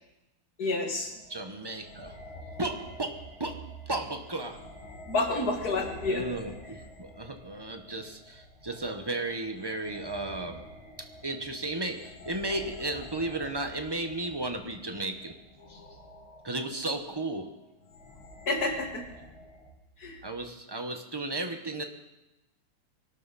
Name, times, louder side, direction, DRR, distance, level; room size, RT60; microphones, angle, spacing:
voice 1, 0.6-1.1 5.1-6.3 15.7-15.8 18.5-19.0 20.0-20.2, left 2 dB, 45° left, 1 dB, 2.7 m, -29 dB
sound 1, 1.2-19.7, equal, 70° left, 3.2 m, -48 dB
voice 2, 1.3-2.1 2.6-4.6 6.1-10.7 11.0-15.4 16.4-17.5 20.2-21.8, right 2 dB, 20° right, 5 dB, 0.7 m, -34 dB
24.0 x 12.0 x 4.2 m, 0.97 s
omnidirectional pair, 2.3 m